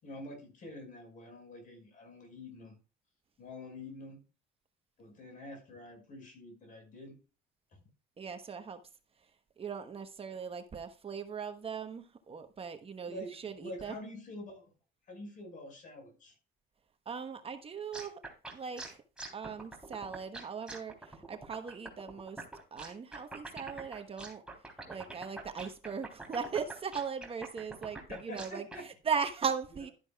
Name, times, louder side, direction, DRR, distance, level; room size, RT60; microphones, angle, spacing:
voice 1, 0.0-2.8 3.4-4.2 5.0-7.2 7.7-7.8 13.1-13.3 13.6-14.7 15.1-16.4 28.1-28.8, left 1 dB, 50° left, 5.5 m, -46 dB
voice 2, 8.2-8.8 9.6-14.0 17.0-18.2 18.5-19.0 19.3-22.4 22.7-24.4 24.9-29.9, right 6 dB, 35° right, 1.1 m, -38 dB
sound 1, 17.9-28.8, right 2 dB, 5° right, 3.3 m, -45 dB
12.0 x 10.5 x 2.3 m
cardioid pair, 110°, 17 cm